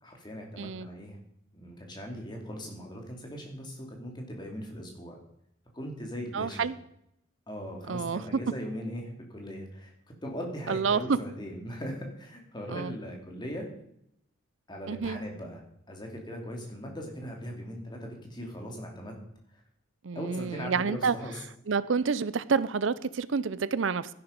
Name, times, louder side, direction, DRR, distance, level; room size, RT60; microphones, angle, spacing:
voice 1, 0.0-1.2 1.5-5.2 5.7-6.7 7.5-9.9 10.2-13.6 14.7-19.1 20.1-21.4, equal, 20° left, 1 dB, 2.8 m, -39 dB
voice 2, 0.6-0.9 6.3-6.8 7.9-8.2 10.7-11.2 12.7-12.9 14.9-15.2 20.0-21.1 21.7-24.1, right 5 dB, 70° right, 16 dB, 0.5 m, -28 dB
12.5 x 11.0 x 5.2 m, 0.75 s
head